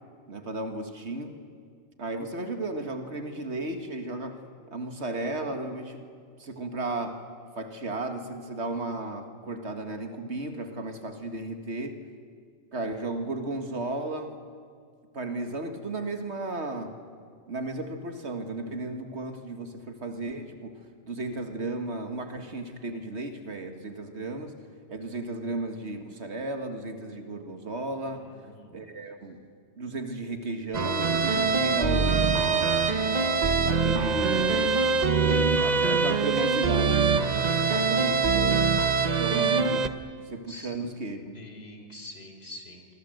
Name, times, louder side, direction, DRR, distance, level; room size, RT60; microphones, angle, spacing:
voice 1, 0.3-1.4 2.0-4.4 4.7-6.1 6.4-7.2 7.6-12.0 12.7-14.4 15.1-17.0 17.5-20.8 21.0-24.6 24.9-28.3 28.7-29.4 29.8-32.8 33.7-34.7 35.6-38.6 39.2-40.0 40.3-41.4, right 2 dB, 70° right, 6 dB, 2.1 m, -34 dB
voice 2, 28.1-28.8 40.5-40.7 41.3-43.0, left 1 dB, 60° left, 5 dB, 3.8 m, -45 dB
sound 1, 30.7-39.9, right 5 dB, 40° right, 1.0 m, -24 dB
26.0 x 23.5 x 7.9 m, 2.1 s
omnidirectional pair, 1.2 m